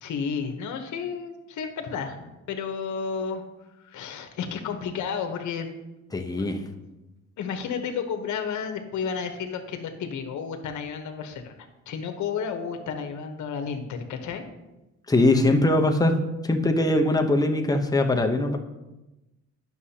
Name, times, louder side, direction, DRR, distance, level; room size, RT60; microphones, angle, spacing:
voice 1, 0.0-3.4 3.8-5.7 6.3-6.5 7.4-11.6 11.9-14.4, left 6 dB, 70° left, 6 dB, 1.1 m, -32 dB
voice 2, 6.1-6.6 15.1-16.2 16.4-18.6, left 2 dB, 10° left, 4 dB, 0.8 m, -21 dB
9.6 x 6.2 x 2.8 m, 1.0 s
cardioid pair, 90°, 30 cm